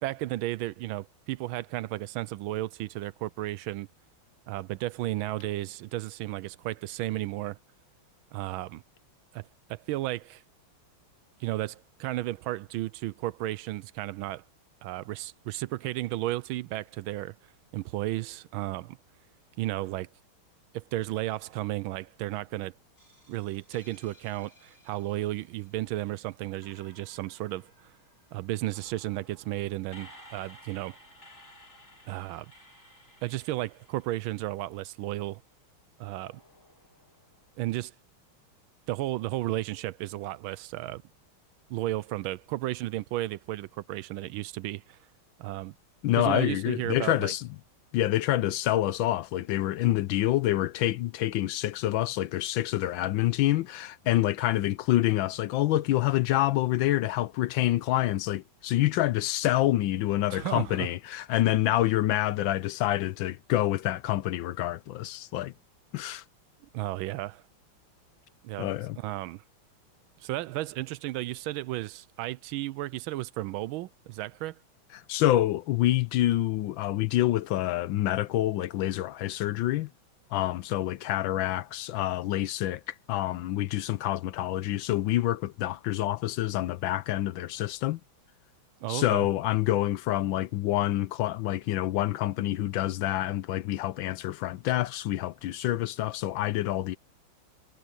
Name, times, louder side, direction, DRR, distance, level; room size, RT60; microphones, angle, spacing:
voice 1, 0.0-3.9 4.5-7.6 8.3-8.8 9.3-10.4 11.4-14.4 14.8-17.4 17.7-19.0 19.6-20.1 20.7-22.7 23.3-27.9 28.3-31.0 32.1-32.5 33.2-35.4 36.0-36.4 37.6-37.9 38.9-41.0 41.7-45.0 45.4-45.7 46.1-47.3 60.3-60.9 66.7-67.4 68.4-68.7 69.0-69.4 70.2-74.6 88.8-89.3, right 16 dB, 80° right, 1.3 m, -33 dB
sound 1, 23.0-26.1 26.6-35.0 36.0-37.5, equal, 35° left, 7.3 m, -56 dB
voice 2, 46.0-47.5 47.9-65.5 65.9-66.2 68.6-69.0 74.9-79.9 80.3-88.0 88.9-97.0, left 14 dB, 75° left, 1.3 m, -27 dB
omnidirectional pair, 2.3 m